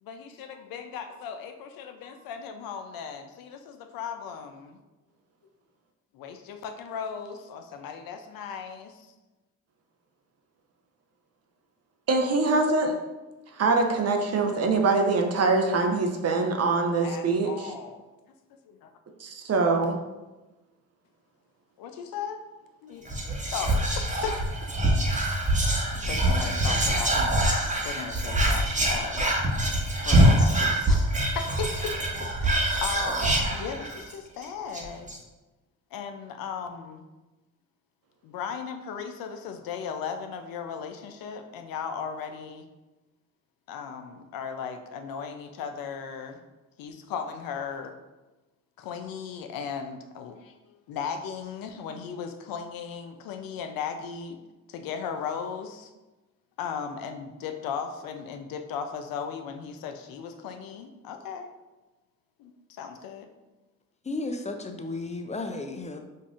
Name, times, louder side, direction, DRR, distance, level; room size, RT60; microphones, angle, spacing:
voice 1, 0.0-4.8 6.1-9.1 17.0-18.0 18.7-18.9 21.8-22.4 22.8-23.0 23.5-24.7 25.7-27.5 27.8-29.3 30.0-31.9 32.4-35.1 35.9-37.1 38.2-42.7 43.7-46.4 46.8-47.9 48.8-50.5 50.9-54.4 54.7-55.9 56.6-61.5 62.4-63.3, left 6 dB, 75° left, 6 dB, 0.5 m, -37 dB
voice 2, 12.1-12.9 13.6-17.7 19.2-19.9, right 3 dB, 45° right, 3 dB, 0.7 m, -24 dB
Whispering, 23.1-34.1 34.4-34.5 34.7-35.2, right 1 dB, 20° right, 1.0 m, -24 dB
voice 3, 64.0-66.0, left 2 dB, 20° left, 5 dB, 0.4 m, -33 dB
5.2 x 2.5 x 2.4 m, 1.1 s
supercardioid pair, 55°, 35 cm